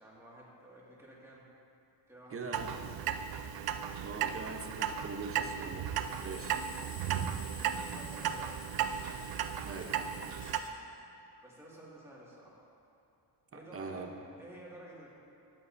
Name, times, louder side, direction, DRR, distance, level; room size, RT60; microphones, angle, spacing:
voice 1, 0.0-1.4 2.1-3.0 6.2-7.1 7.6-8.5 11.4-12.6 13.5-14.1 14.4-15.1, right 1 dB, 5° right, -6 dB, 2.0 m, -53 dB
voice 2, 2.3-2.7 4.0-5.9 6.2-6.5 9.6-10.2 13.5-14.1, right 4 dB, 30° right, 3 dB, 0.9 m, -42 dB
Clock, 2.5-10.6, right 9 dB, 60° right, 0.5 m, -35 dB
sound 1, 5.9-10.7, left 1 dB, 20° left, 1.3 m, -51 dB
13.0 x 7.6 x 2.6 m, 2.7 s
cardioid pair, 100°, 43 cm